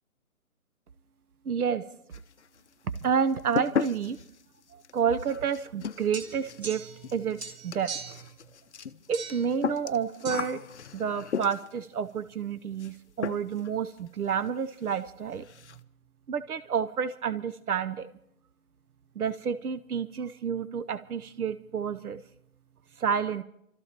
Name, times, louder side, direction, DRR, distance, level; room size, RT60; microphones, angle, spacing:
voice 1, 1.4-1.8 2.9-4.2 4.7-8.2 9.1-10.6 10.9-15.4 16.3-18.1 19.2-22.2 23.0-23.4, right 7 dB, 85° right, 12 dB, 0.9 m, -30 dB
sound 1, 2.1-2.7 2.9-11.8 12.8-13.0 13.2-13.7 14.0-14.1 14.5-14.6 14.8-15.0 15.3-15.8, left 7 dB, 55° left, 0.6 m, -36 dB
sound 2, 6.1-7.1 7.4-8.3 9.1-9.5 10.2-10.4, right 5 dB, 45° right, 2.4 m, -40 dB
29.5 x 13.5 x 2.9 m, 0.78 s
hypercardioid pair, 170°, 43 cm